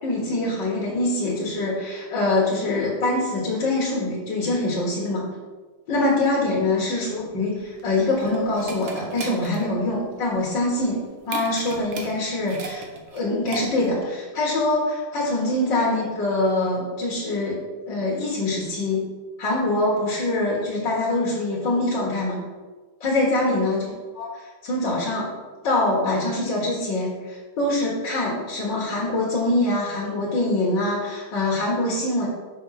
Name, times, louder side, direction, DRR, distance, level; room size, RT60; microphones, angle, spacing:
voice 1, 0.0-5.3 5.9-12.8 13.1-17.6 17.9-19.0 19.4-22.4 23.0-23.8 24.1-25.3 25.6-32.3, left 2 dB, 65° left, -5 dB, 2.3 m, -24 dB
sound 1, 7.6-14.0, right 4 dB, 80° right, 1.8 m, -37 dB
6.7 x 5.0 x 5.8 m, 1.3 s
omnidirectional pair, 2.2 m